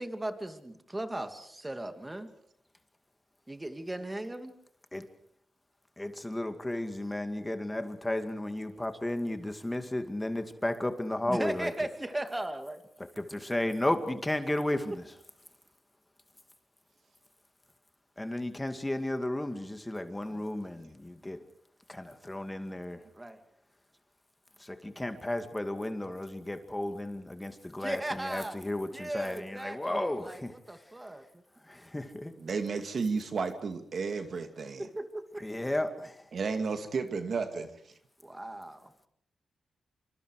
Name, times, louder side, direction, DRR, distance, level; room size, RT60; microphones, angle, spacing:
voice 1, 0.0-2.3 3.5-4.5 11.2-12.8 23.1-23.4 27.8-28.6 28.9-30.4 30.7-31.2 34.8-35.5 38.2-38.9, right 1 dB, 15° right, 8 dB, 2.7 m, -37 dB
voice 2, 6.0-11.7 13.2-15.0 18.2-21.4 21.9-23.0 24.6-30.5 31.7-32.3 35.4-36.2, left 1 dB, 15° left, 8 dB, 2.3 m, -33 dB
voice 3, 32.4-34.9 36.3-37.8, right 4 dB, 65° right, 7 dB, 2.5 m, -32 dB
26.5 x 25.5 x 4.9 m, 0.65 s
cardioid pair, 80°, 0 cm